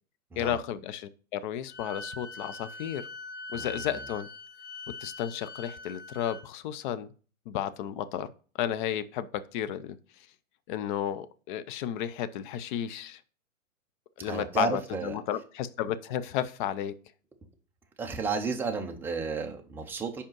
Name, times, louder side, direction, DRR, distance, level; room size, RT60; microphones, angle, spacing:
voice 1, 0.4-3.1 3.5-4.3 5.0-7.1 7.5-8.3 8.6-10.0 10.7-13.2 14.2-16.9, left 10 dB, 35° left, 14 dB, 0.6 m, -33 dB
Wind instrument woodwind instrument, 1.7-6.4, left 2 dB, 55° left, 1.3 m, -42 dB
voice 2, 14.2-15.1 18.0-20.2, right 4 dB, 5° right, 3 dB, 0.4 m, -32 dB
5.2 x 5.0 x 6.2 m, 0.40 s
hypercardioid pair, 130°, 41 cm